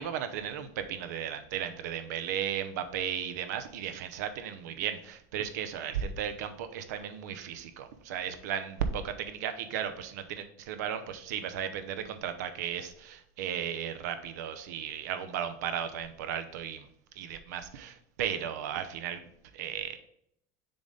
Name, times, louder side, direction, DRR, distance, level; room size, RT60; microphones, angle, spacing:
voice 1, 0.0-16.9 17.1-20.0, right 8 dB, 85° right, 10 dB, 0.7 m, -35 dB
6.9 x 3.9 x 3.9 m, 0.70 s
cardioid pair, 180°, 9 cm